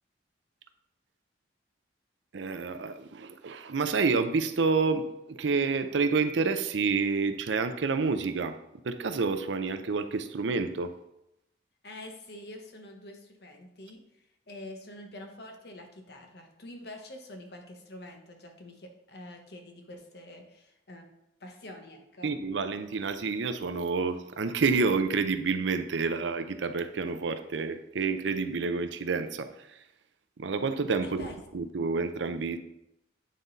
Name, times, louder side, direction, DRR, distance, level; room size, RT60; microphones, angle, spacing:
voice 1, 2.3-8.6 8.8-10.9 22.2-29.5 30.4-31.3 31.5-32.6, right 4 dB, 80° right, 9 dB, 0.5 m, -29 dB
voice 2, 11.8-14.0 14.5-21.1 21.4-22.4 31.0-31.4, left 1 dB, 60° left, 3 dB, 1.1 m, -46 dB
9.2 x 3.9 x 4.0 m, 0.84 s
head